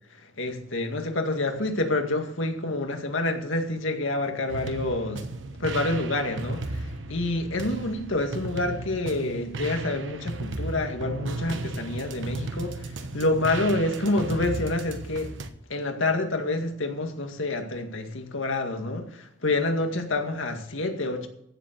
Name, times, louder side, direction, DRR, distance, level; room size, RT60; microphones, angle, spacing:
voice 1, 0.2-5.2 5.6-15.3 15.7-21.3, left 2 dB, 85° left, 2.1 m, -28 dB
sound 1, 4.5-15.5, right 2 dB, 70° right, 1.2 m, -35 dB
15.5 x 7.3 x 6.7 m
head